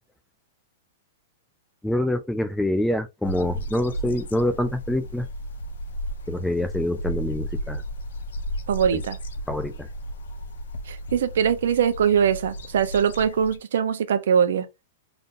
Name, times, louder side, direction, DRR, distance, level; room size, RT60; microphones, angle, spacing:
voice 1, 1.8-5.3 6.3-7.8 8.9-9.0 9.5-9.9, left 1 dB, 5° left, 0.3 m, -26 dB
sound 1, 3.2-13.6, equal, 85° left, 0.9 m, -34 dB
voice 2, 8.7-9.2 10.9-14.7, right 7 dB, 75° right, 0.8 m, -22 dB
3.9 x 3.5 x 2.5 m
hypercardioid pair, 155°, 0 cm